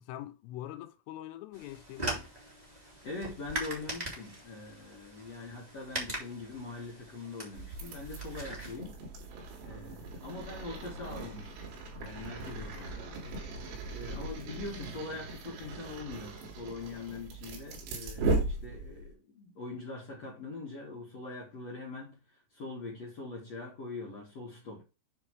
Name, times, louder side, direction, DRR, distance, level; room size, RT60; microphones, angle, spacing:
voice 1, 0.0-2.2, left 13 dB, 85° left, 3.1 m, -43 dB
sound 1, 1.5-8.8, right 1 dB, 25° right, 0.9 m, -41 dB
voice 2, 3.0-9.0 9.6-11.7 12.0-13.3 13.9-22.2 22.5-24.8, left 3 dB, 55° left, 1.9 m, -43 dB
sound 2, 7.5-19.1, right 2 dB, 75° right, 5.1 m, -38 dB
9.6 x 3.5 x 4.7 m
omnidirectional pair, 6.0 m